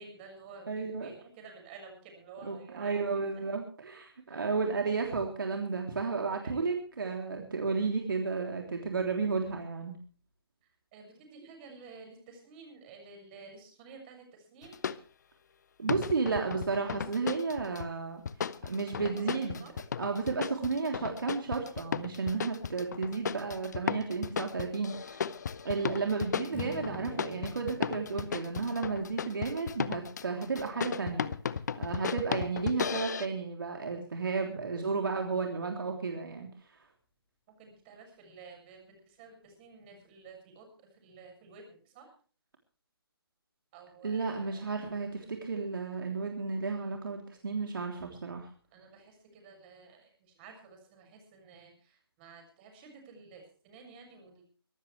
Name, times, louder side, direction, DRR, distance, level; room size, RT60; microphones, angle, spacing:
voice 1, 0.0-3.0 4.3-4.5 6.4-6.6 10.9-14.7 19.0-19.7 25.8-26.0 37.6-42.1 43.7-44.9 48.7-54.4, right 4 dB, 25° right, 3 dB, 6.7 m, -52 dB
voice 2, 0.7-1.1 2.4-10.0 15.8-18.2 18.6-19.7 20.0-25.3 25.6-31.3 31.7-36.5 44.0-48.5, right 4 dB, 60° right, 2 dB, 3.4 m, -33 dB
sound 1, 14.6-15.0 15.9-17.9 18.3-33.3, left 7 dB, 45° left, 0.8 m, -35 dB
Strum, 26.5-30.9, left 6 dB, 10° left, 1.8 m, -50 dB
24.5 x 13.0 x 3.4 m, 0.41 s
figure-of-eight pair, 145°, 13 cm